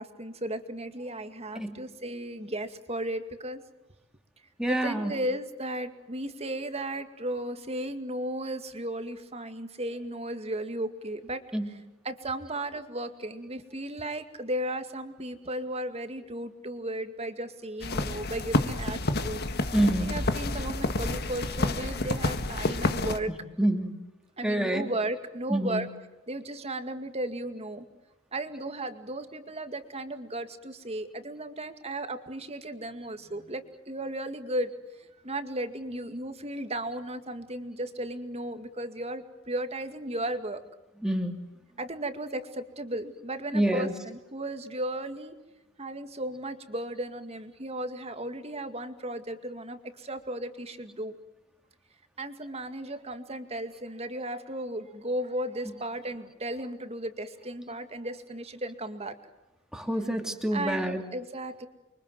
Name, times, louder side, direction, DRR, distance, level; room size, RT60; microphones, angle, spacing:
voice 1, 0.0-3.6 4.7-11.4 12.0-19.7 20.0-23.3 24.4-25.9 26.3-27.9 28.3-34.7 35.0-40.6 41.8-45.3 45.8-51.1 52.2-59.2 60.5-61.7, right 1 dB, 30° right, 8 dB, 2.2 m, -35 dB
voice 2, 4.6-5.2 11.5-11.7 19.7-20.1 23.6-23.9 24.4-24.9 25.5-25.9 41.0-41.3 43.5-43.9 59.7-61.0, right 1 dB, 5° right, 4 dB, 2.8 m, -27 dB
sound 1, 17.8-23.2, left 2 dB, 50° left, 1.7 m, -29 dB
29.5 x 24.0 x 7.8 m, 1.0 s
head